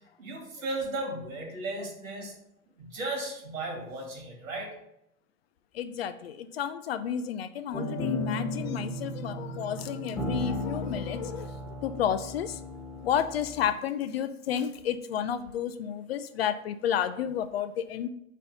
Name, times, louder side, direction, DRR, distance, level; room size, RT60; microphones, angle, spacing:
voice 1, 0.2-2.3 2.8-4.8, right 2 dB, 65° right, 1 dB, 2.2 m, -35 dB
voice 2, 5.7-11.5 11.8-12.6 13.0-18.1, left 9 dB, 45° left, 11 dB, 0.4 m, -31 dB
sound 1, 7.7-13.7, left 1 dB, 5° left, 1.4 m, -35 dB
5.4 x 4.2 x 5.2 m, 0.81 s
figure-of-eight pair, 95°, 43 cm